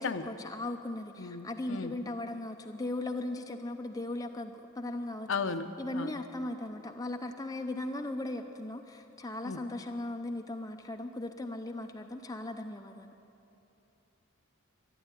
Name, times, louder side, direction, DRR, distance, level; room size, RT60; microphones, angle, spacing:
voice 1, 0.0-5.3 5.8-13.1, left 2 dB, 15° left, 5 dB, 0.5 m, -38 dB
voice 2, 1.2-1.9 5.3-6.2 9.4-9.6, left 4 dB, 60° left, 9 dB, 0.7 m, -35 dB
13.0 x 11.5 x 9.8 m, 2.9 s
head